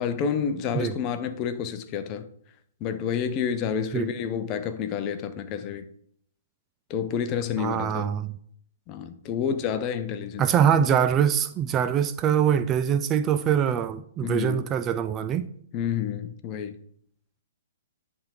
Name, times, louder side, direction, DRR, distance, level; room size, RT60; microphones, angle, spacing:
voice 1, 0.0-2.2 2.8-5.8 6.9-8.1 8.9-10.5 14.2-14.6 15.7-16.8, left 7 dB, 30° left, 0.8 m, -29 dB
voice 2, 7.6-8.3 10.4-15.5, right 8 dB, 25° right, 0.4 m, -23 dB
10.5 x 3.6 x 4.8 m
hypercardioid pair, 125°, 0 cm